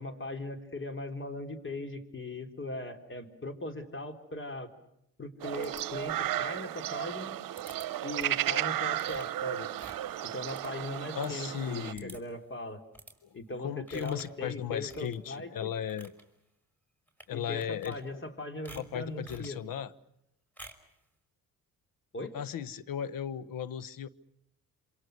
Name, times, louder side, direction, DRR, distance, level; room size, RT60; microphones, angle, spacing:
voice 1, 0.0-4.7 5.2-7.4 8.0-9.7 10.2-12.8 13.3-15.7 17.3-19.6 22.1-22.3, left 2 dB, 30° left, 6 dB, 3.9 m, -39 dB
sound 1, 5.4-11.9, right 13 dB, 60° right, 1.0 m, -34 dB
sound 2, 5.6-6.3 7.6-7.9 8.2-8.5 8.9-11.3 11.6-11.7 11.9-12.4 12.9-13.2 13.9-14.4 14.8-15.4 15.7-16.2 17.1-17.3 17.6-18.3 18.6-19.6 20.6-20.9, right 1 dB, 5° left, 5.1 m, -52 dB
voice 2, 11.1-12.2 13.6-16.1 17.3-18.0 18.7-19.9 22.3-24.1, left 9 dB, 60° left, 18 dB, 1.2 m, -36 dB
27.5 x 26.0 x 6.7 m, 0.79 s
hypercardioid pair, 55°, 38 cm